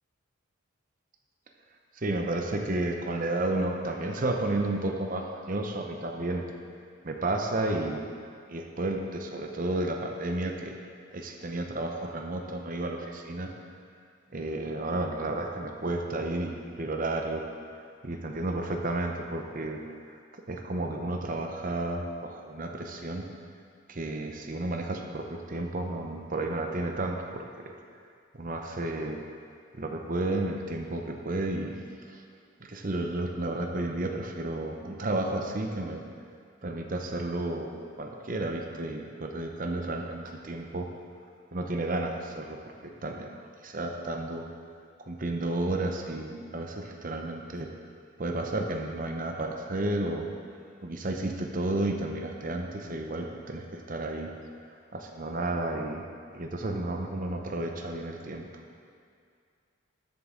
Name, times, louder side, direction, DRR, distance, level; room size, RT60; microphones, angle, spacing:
voice 1, 2.0-6.4 7.0-8.0 8.5-10.8 11.1-13.5 14.3-17.4 17.7-19.8 20.1-20.2 20.5-23.3 23.9-27.7 28.3-29.2 29.7-31.8 32.1-32.2 32.6-36.0 36.6-40.9 41.5-44.5 45.0-47.7 48.2-50.3 50.8-54.3 54.9-56.0 56.3-58.4, right 2 dB, 40° right, 3 dB, 0.7 m, -32 dB
13.0 x 7.7 x 3.8 m, 2.3 s
head